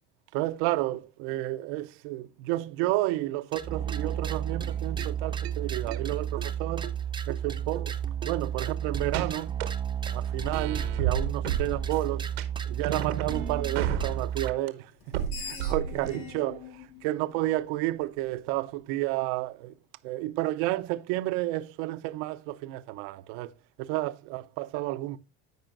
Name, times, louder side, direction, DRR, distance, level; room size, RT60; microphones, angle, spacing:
voice 1, 0.3-6.9 7.3-7.9 8.2-9.5 10.1-12.3 12.7-19.7 20.0-23.5 23.8-25.2, right 17 dB, 65° right, 0.7 m, -31 dB
sound 1, 3.5-14.5, right 8 dB, 15° right, 0.7 m, -32 dB
sound 2, 4.1-4.2 4.5-4.6 5.0-5.1 5.4-5.5 5.9-6.0 6.4-6.5 6.8-6.9 7.3-7.4 7.7-7.8 8.2-8.3 8.7-8.8 9.1-9.7 10.1-10.2 10.5-12.1 12.4-12.5 12.8-14.7 15.1-16.4, right 9 dB, 90° right, 1.1 m, -33 dB
Screech, 15.0-18.2, left 6 dB, 75° left, 2.0 m, -44 dB
14.5 x 5.0 x 2.5 m
hypercardioid pair, 85°, 30 cm